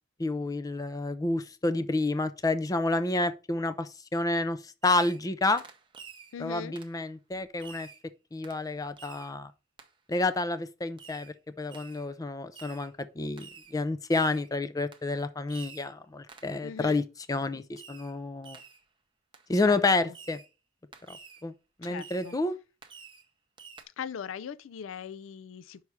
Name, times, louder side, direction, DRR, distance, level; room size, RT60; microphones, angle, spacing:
voice 1, 0.2-5.6 6.4-7.9 8.3-9.5 10.1-17.0 17.3-18.6 19.5-20.4 21.1-21.2 21.4-21.5 21.8-22.6, left 2 dB, 20° left, 0.4 m, -29 dB
Fireworks, 4.8-5.3 5.6-6.3 6.8-7.0 7.6-8.0 8.4-8.6 9.0-9.3 9.8-9.9 11.0-11.3 11.7-12.1 12.5-12.9 13.4-13.8 14.1-14.5 14.9-15.1 15.5-15.9 16.3-16.6 17.8-18.2 18.4-18.8 19.3-19.5 20.1-20.5 20.9-21.4 21.8-22.4 22.8-23.3 23.6-23.8, right 5 dB, 25° right, 0.7 m, -49 dB
voice 2, 6.3-6.8 16.6-17.1 19.6-20.1 21.8-22.4 24.0-25.8, left 7 dB, 80° left, 0.4 m, -40 dB
5.5 x 4.8 x 4.5 m
head